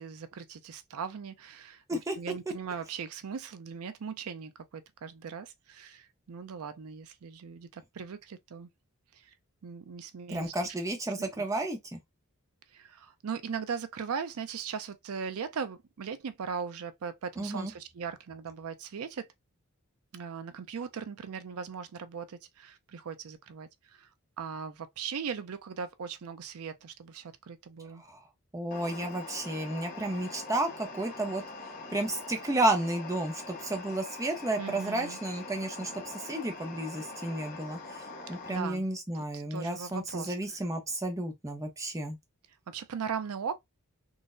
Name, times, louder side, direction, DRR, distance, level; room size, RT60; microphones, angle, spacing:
voice 1, 0.0-8.7 9.1-9.3 9.6-10.7 11.2-11.4 12.7-19.3 20.1-24.1 24.4-28.0 34.6-35.2 38.5-38.8 39.1-40.4 42.7-43.6, right 6 dB, 80° right, 0.5 m, -39 dB
voice 2, 10.3-12.0 17.4-17.7 28.1-28.2 28.5-31.4 31.9-42.2, right 1 dB, 15° right, 0.6 m, -32 dB
sound 1, 28.7-38.6, left 3 dB, 40° left, 0.6 m, -43 dB
3.8 x 2.0 x 2.5 m
head